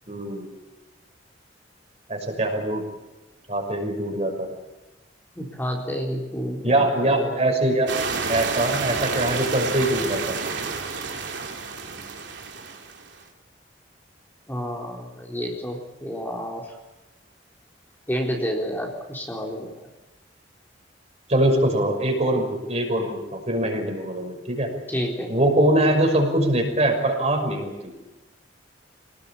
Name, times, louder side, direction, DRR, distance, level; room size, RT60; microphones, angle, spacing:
voice 1, 0.1-0.5 2.1-2.8 3.5-4.6 6.6-7.9 8.3-10.4 21.3-24.8 25.3-27.9, right 1 dB, 35° right, 3 dB, 5.8 m, -23 dB
voice 2, 5.4-7.4 14.5-16.7 18.1-19.7 24.9-25.3, equal, 10° left, -1 dB, 4.0 m, -29 dB
sound 1, 7.9-13.2, right 4 dB, 70° right, 3.6 m, -29 dB
25.5 x 19.5 x 8.6 m, 1.1 s
head